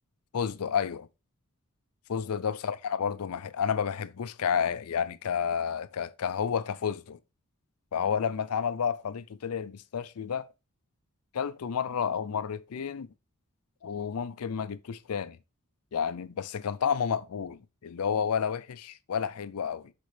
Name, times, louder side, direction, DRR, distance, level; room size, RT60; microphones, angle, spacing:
voice 1, 0.3-1.1 2.1-7.2 7.9-10.5 11.3-13.1 13.8-15.4 15.9-19.9, left 7 dB, 80° left, 0.5 m, -31 dB
6.5 x 4.4 x 3.3 m
head